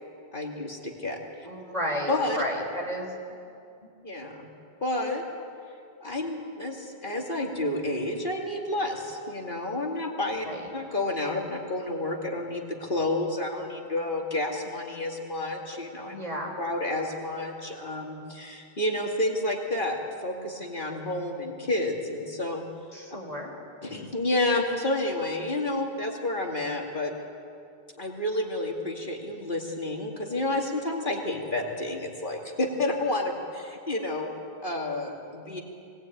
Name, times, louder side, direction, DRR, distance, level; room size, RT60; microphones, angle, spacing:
voice 1, 0.3-1.5 2.1-2.4 4.0-4.5 4.8-5.2 6.0-10.5 10.7-16.2 16.6-22.6 23.8-27.1 28.0-34.3 34.6-35.6, left 2 dB, 55° left, 0 dB, 2.6 m, -30 dB
voice 2, 1.4-3.2 10.5-10.7 16.0-16.5 22.9-23.5, equal, 40° right, 1 dB, 4.1 m, -32 dB
24.0 x 18.0 x 9.3 m, 2.5 s
omnidirectional pair, 1.1 m